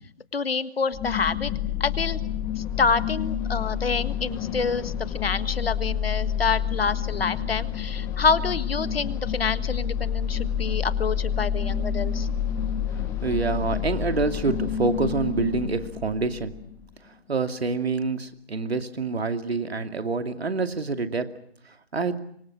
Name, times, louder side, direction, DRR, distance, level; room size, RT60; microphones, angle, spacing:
voice 1, 0.3-1.5 1.8-2.2 2.6-12.3, left 5 dB, 65° left, 13 dB, 1.6 m, -27 dB
sound 1, 0.9-16.8, left 8 dB, 10° left, 0.9 m, -29 dB
voice 2, 13.2-16.5 17.0-21.3 21.7-22.2, right 4 dB, 70° right, 8 dB, 2.5 m, -27 dB
27.5 x 25.0 x 6.2 m, 0.68 s
figure-of-eight pair, 145°, 32 cm